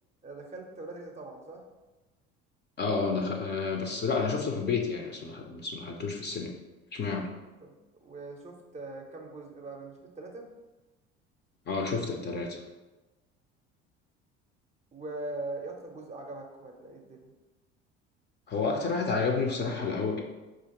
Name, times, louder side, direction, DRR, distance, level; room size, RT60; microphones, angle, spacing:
voice 1, 0.2-1.6 7.6-10.5 14.9-17.3, right 2 dB, 20° right, 1 dB, 0.6 m, -41 dB
voice 2, 2.8-6.5 6.9-7.3 11.7-12.6 18.5-20.2, left 4 dB, 30° left, 2 dB, 0.5 m, -30 dB
4.2 x 2.5 x 2.9 m, 1.1 s
hypercardioid pair, 70°, 33 cm